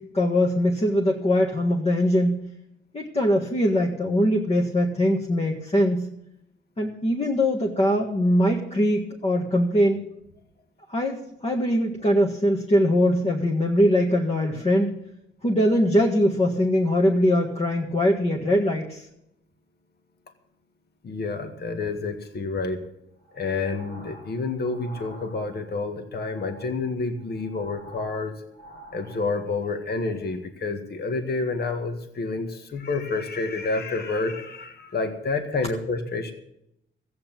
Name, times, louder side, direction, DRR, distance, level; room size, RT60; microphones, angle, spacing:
voice 1, 0.0-2.4 2.9-6.1 6.8-10.0 10.9-15.0 15.4-19.1, equal, 30° left, 0 dB, 1.7 m, -22 dB
voice 2, 21.0-22.8 23.3-28.4 28.9-36.3, left 3 dB, 50° left, 6 dB, 1.8 m, -29 dB
sound 1, 23.2-25.8 26.1-29.7, right 1 dB, 75° left, 5.4 m, -47 dB
14.5 x 8.8 x 7.4 m, 0.79 s
cardioid pair, 100°, 20 cm